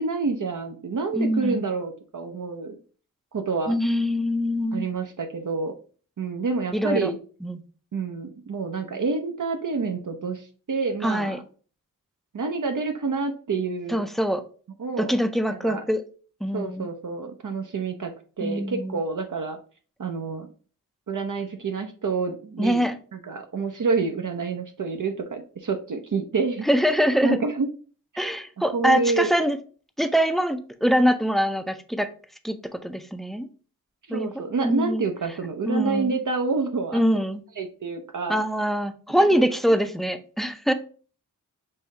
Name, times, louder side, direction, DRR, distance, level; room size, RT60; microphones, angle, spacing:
voice 1, 0.0-2.8 3.3-3.7 4.7-5.7 6.2-7.2 7.9-11.4 12.3-14.0 14.8-15.2 15.5-15.8 16.5-18.1 18.4-19.6 20.0-20.5 21.1-26.6 27.2-27.7 28.7-29.3 34.1-37.0 37.6-38.4 39.1-39.4 40.7-40.8, right 4 dB, 60° right, 5 dB, 0.6 m, -28 dB
voice 2, 1.1-1.6 3.7-4.9 6.7-7.1 7.4-7.6 11.0-11.4 13.9-14.4 15.0-16.0 16.4-16.9 18.4-19.0 22.6-23.0 26.6-27.4 28.2-29.6 30.0-32.1 32.4-33.5 34.1-35.0 35.6-36.2 36.9-37.4 38.3-40.7, equal, ahead, 9 dB, 0.5 m, -24 dB
5.5 x 2.7 x 3.2 m, 0.40 s
wide cardioid pair, 60°, 34 cm